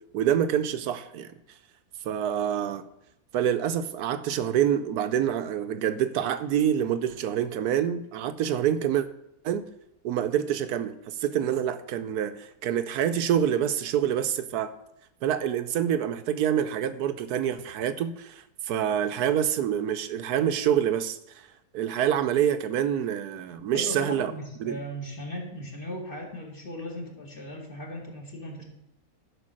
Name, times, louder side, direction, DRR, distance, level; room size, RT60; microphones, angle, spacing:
voice 1, 0.1-1.3 2.0-2.8 3.3-9.1 9.4-9.6 10.0-14.7 15.2-21.2 21.7-24.3 24.6-24.8, right 9 dB, 80° right, 1.2 m, -26 dB
voice 2, 23.7-28.6, equal, 35° left, 2.2 m, -37 dB
11.5 x 5.3 x 6.3 m
omnidirectional pair, 1.6 m